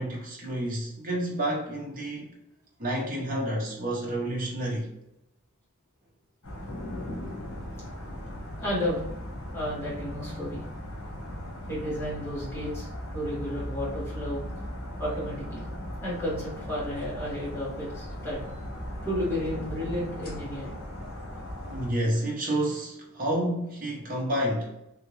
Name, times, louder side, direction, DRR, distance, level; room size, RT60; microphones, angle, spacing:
voice 1, 0.0-2.3 2.8-4.9 21.6-24.7, right 1 dB, 40° right, 1.0 m, -29 dB
sound 1, 6.4-21.9, equal, 75° left, 1.2 m, -38 dB
voice 2, 8.6-9.1 9.5-10.6 11.7-14.4 15.0-15.7 16.0-18.5 19.0-20.7, equal, 10° left, 1.5 m, -32 dB
3.5 x 2.7 x 3.1 m
head